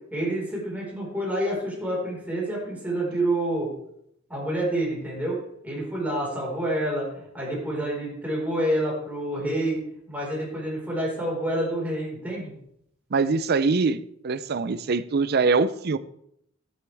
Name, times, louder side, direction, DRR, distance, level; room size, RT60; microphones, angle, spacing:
voice 1, 0.1-3.7 4.3-5.3 5.6-9.8 10.1-12.5, right 1 dB, 10° right, -4 dB, 4.7 m, -28 dB
voice 2, 13.1-16.0, right 4 dB, 50° right, 14 dB, 0.5 m, -23 dB
12.5 x 9.5 x 3.5 m, 0.73 s
head